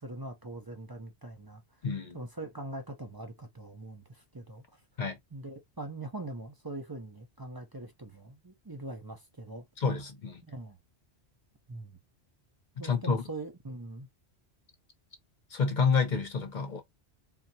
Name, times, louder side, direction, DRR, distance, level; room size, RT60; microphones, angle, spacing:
voice 1, 0.0-1.6 2.1-4.8 5.3-9.7 10.4-10.8 11.7-12.0 12.8-14.1, right 2 dB, 25° right, 0.5 m, -42 dB
voice 2, 1.8-2.2 5.0-5.2 9.8-10.4 12.8-13.2 15.5-16.8, left 5 dB, 50° left, 0.9 m, -29 dB
3.8 x 2.8 x 2.7 m
omnidirectional pair, 1.1 m